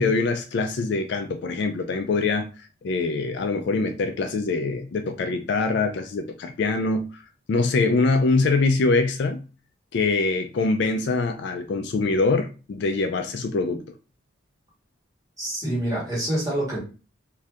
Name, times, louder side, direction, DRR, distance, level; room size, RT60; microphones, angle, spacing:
voice 1, 0.0-7.2 7.5-9.4 9.9-13.8, left 3 dB, 55° left, 0.3 m, -24 dB
voice 2, 15.4-16.8, right 1 dB, 15° right, 1.5 m, -26 dB
2.6 x 2.4 x 3.3 m
head